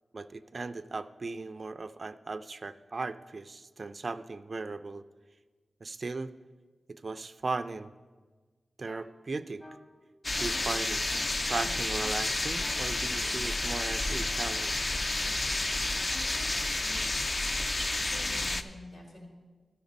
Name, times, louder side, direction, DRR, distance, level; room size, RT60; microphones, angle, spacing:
voice 1, 0.1-5.0 5.8-6.3 6.9-7.9 8.8-9.6 10.4-14.9, right 3 dB, 50° right, 13 dB, 0.3 m, -37 dB
sound 1, 8.9-9.0 9.6-9.8 10.4-10.6 11.1-11.3 11.6-12.1 12.6-14.9 16.1-16.6, left 1 dB, 20° left, 1.0 m, -49 dB
sound 2, 10.2-18.6, left 2 dB, 35° left, 0.4 m, -30 dB
voice 2, 17.6-19.3, left 1 dB, 85° left, -3 dB, 2.4 m, -48 dB
13.0 x 5.1 x 5.2 m, 1.4 s
wide cardioid pair, 75°, 0 cm